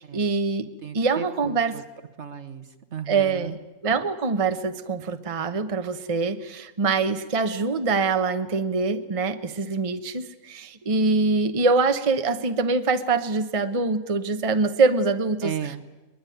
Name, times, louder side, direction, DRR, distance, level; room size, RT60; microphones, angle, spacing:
voice 1, 0.0-0.7 0.9-1.8 3.1-3.6 3.8-15.5, right 4 dB, 25° right, 8 dB, 1.0 m, -24 dB
voice 2, 0.8-1.8 2.2-3.6 15.4-15.8, right 8 dB, 55° right, 10 dB, 1.3 m, -35 dB
22.0 x 21.5 x 9.3 m, 1.1 s
omnidirectional pair, 1.6 m